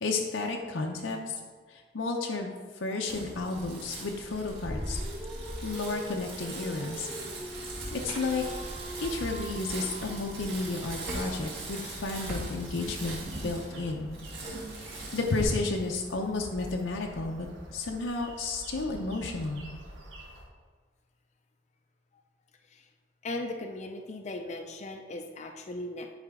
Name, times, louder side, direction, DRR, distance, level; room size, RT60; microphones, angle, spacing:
voice 1, 0.0-1.4 1.7-2.5 2.8-5.0 5.6-7.1 7.9-8.7 9.0-13.2 13.4-14.2 14.7-19.7, left 3 dB, 85° left, 1 dB, 0.7 m, -32 dB
Bicycle, 3.1-15.4, right 1 dB, 65° right, 2.1 m, -39 dB
Dog, 4.7-11.1, equal, 30° right, 0.6 m, -44 dB
sound 1, 7.5-20.4, equal, 85° right, 1.4 m, -47 dB
voice 2, 23.2-26.1, left 2 dB, 35° left, 3 dB, 0.4 m, -38 dB
9.7 x 4.9 x 3.6 m, 1.5 s
head